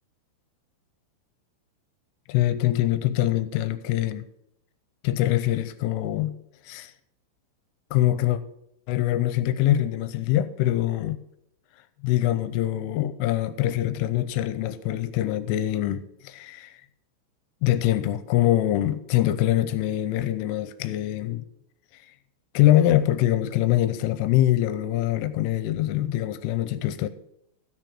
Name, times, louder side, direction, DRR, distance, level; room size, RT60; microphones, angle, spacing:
voice 1, 2.3-4.3 5.0-6.4 6.7-6.9 7.9-8.4 8.9-11.2 12.0-16.8 17.6-21.5 22.5-27.1, left 13 dB, 85° left, 3.1 m, -24 dB
13.5 x 6.3 x 6.0 m
omnidirectional pair, 5.8 m